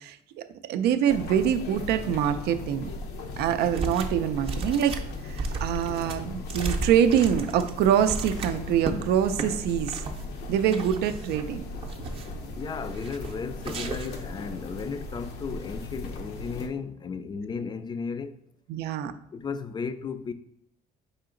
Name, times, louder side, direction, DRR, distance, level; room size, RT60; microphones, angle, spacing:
voice 1, 0.0-2.9 3.4-10.0 10.5-11.6 18.7-19.1, right 9 dB, 75° right, 0.4 m, -25 dB
sound 1, 1.1-16.7, left 2 dB, 80° left, 0.6 m, -38 dB
sound 2, 3.7-4.2 4.4-9.0 9.3-9.5 9.8-10.2 10.7-11.4 11.8-12.4 12.9-13.3 13.6-14.2, right 3 dB, 35° right, 0.6 m, -34 dB
voice 2, 12.5-18.4 19.0-20.3, left 5 dB, 25° left, 0.3 m, -35 dB
4.9 x 2.8 x 3.7 m
cardioid pair, 110°, 17 cm